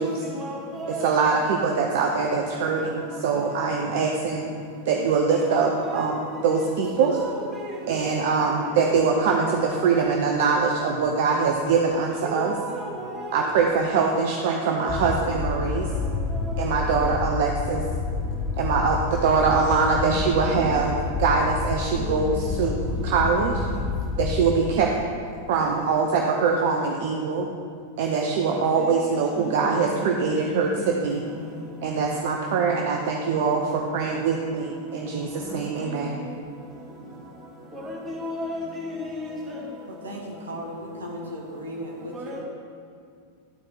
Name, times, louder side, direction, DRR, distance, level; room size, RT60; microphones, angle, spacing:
voice 1, 0.3-1.2 5.4-6.1 7.0-10.0 12.2-13.5 14.4-14.5 14.7-15.0 16.3-16.7 19.8-20.3 22.0-22.6 22.8-23.9 29.4-29.9 30.5-31.0 35.2-35.6 37.7-39.6 42.1-42.4, equal, 15° right, 2.4 m, -35 dB
voice 2, 1.0-4.5 4.9-7.2 7.9-12.5 13.3-15.9 16.6-17.8 18.6-23.6 24.2-24.9 25.5-27.5 28.0-31.2 31.8-36.2, right 5 dB, 50° right, 0.6 m, -23 dB
sound 1, 14.9-24.7, left 4 dB, 40° left, 0.5 m, -29 dB
voice 3, 39.9-42.4, equal, 70° right, 1.3 m, -36 dB
11.5 x 4.4 x 4.7 m
figure-of-eight pair, 90°, 0 cm